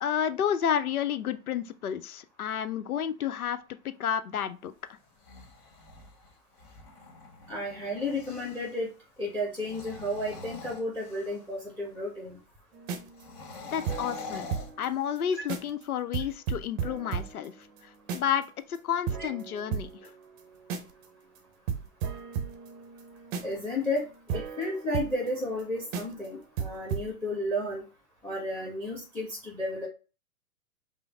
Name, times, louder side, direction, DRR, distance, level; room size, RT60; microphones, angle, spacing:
voice 1, 0.0-3.6 3.8-4.7 13.7-14.5 14.8-17.5 18.1-20.1, left 9 dB, 70° left, 12 dB, 0.7 m, -30 dB
sound 1, 5.0-8.8 9.5-11.6 13.1-15.4, left 4 dB, 40° left, 1.5 m, -45 dB
voice 2, 7.5-8.9 9.2-12.4 14.3-14.4 15.4-15.5 19.2-19.3 23.4-24.1 24.3-27.8 28.2-29.9, left 1 dB, 5° left, -1 dB, 1.1 m, -32 dB
sound 2, 12.7-14.9 15.2-15.3 15.5-15.8 16.1-18.4 18.7-18.8 19.1-21.0 21.4-21.5 21.7-25.6 25.9-26.3 26.6-27.1, right 7 dB, 35° right, 0.7 m, -35 dB
5.0 x 2.0 x 3.5 m, 0.32 s
figure-of-eight pair, 110°, 45 cm